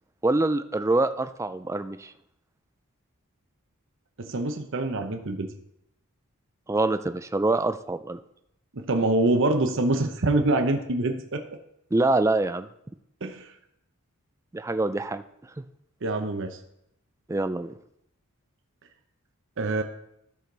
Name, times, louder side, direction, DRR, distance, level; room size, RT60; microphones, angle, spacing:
voice 1, 0.2-2.1 6.7-8.2 11.9-12.7 14.5-15.2 17.3-17.7, right 2 dB, 15° right, 10 dB, 0.4 m, -25 dB
voice 2, 4.2-5.5 8.7-11.4 13.2-13.5 16.0-16.6 19.6-19.8, right 2 dB, 60° right, 5 dB, 0.8 m, -25 dB
13.5 x 6.4 x 4.0 m, 0.79 s
head